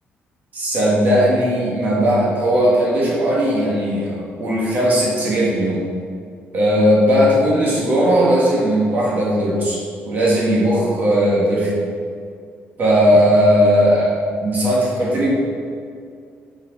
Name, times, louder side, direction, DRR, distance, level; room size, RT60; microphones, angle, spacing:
voice 1, 0.5-5.9 6.5-9.8 10.1-11.8 12.8-14.1 14.4-15.3, equal, 40° right, -6 dB, 1.8 m, -17 dB
7.0 x 4.8 x 4.8 m, 2.3 s
cardioid pair, 155°, 4 cm